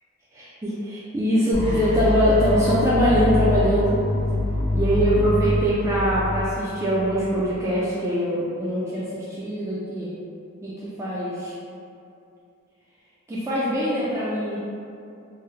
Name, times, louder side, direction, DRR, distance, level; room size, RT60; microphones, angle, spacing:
voice 1, 0.3-4.0 4.7-10.1 10.6-11.5 13.3-14.6, equal, 15° right, -9 dB, 0.3 m, -23 dB
sound 1, 1.5-7.5, left 1 dB, 30° right, 0.8 m, -25 dB
2.7 x 2.0 x 3.8 m, 2.5 s
head